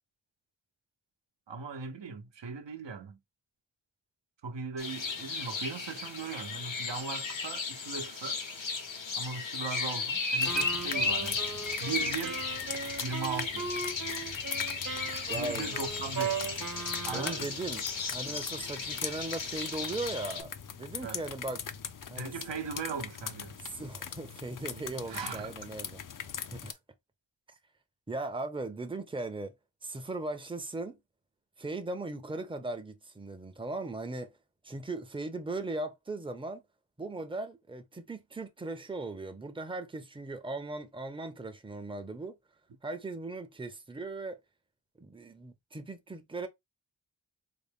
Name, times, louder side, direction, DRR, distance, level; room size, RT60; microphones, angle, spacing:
voice 1, 1.5-3.2 4.4-8.4 9.2-11.4 11.8-12.5 13.0-13.7 15.3-16.5 17.1-17.5 21.0-21.2 22.2-23.6 25.1-25.5, right 5 dB, 70° right, 0.8 m, -38 dB
sound 1, 4.8-20.4, left 4 dB, 80° left, 1.0 m, -35 dB
sound 2, 10.4-26.7, left 7 dB, 45° left, 0.5 m, -42 dB
Wind instrument woodwind instrument, 10.5-17.6, right 5 dB, 50° right, 1.1 m, -38 dB
voice 2, 15.3-15.7 17.1-17.8 18.1-21.6 22.1-22.3 23.6-26.0 26.5-26.8 28.1-29.5 29.8-31.0 31.6-34.4 34.6-36.6 37.0-42.3 42.8-44.4 45.0-46.5, right 2 dB, 10° right, 0.6 m, -38 dB
3.8 x 2.1 x 3.4 m
wide cardioid pair, 65°, 45 cm